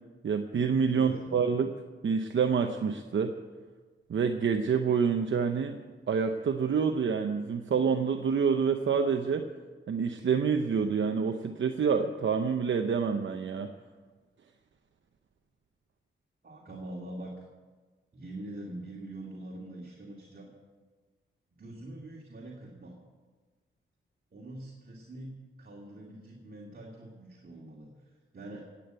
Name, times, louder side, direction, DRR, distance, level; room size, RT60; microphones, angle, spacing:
voice 1, 0.2-1.7 2.0-3.3 4.1-5.8 6.1-9.5 9.9-13.7, right 6 dB, 65° right, 5 dB, 0.8 m, -27 dB
voice 2, 0.9-1.4 16.4-17.4 18.1-20.5 21.6-23.0 24.3-28.7, right 1 dB, 45° right, -2 dB, 2.6 m, -44 dB
17.0 x 8.6 x 7.7 m, 1.4 s
wide cardioid pair, 100°, 21 cm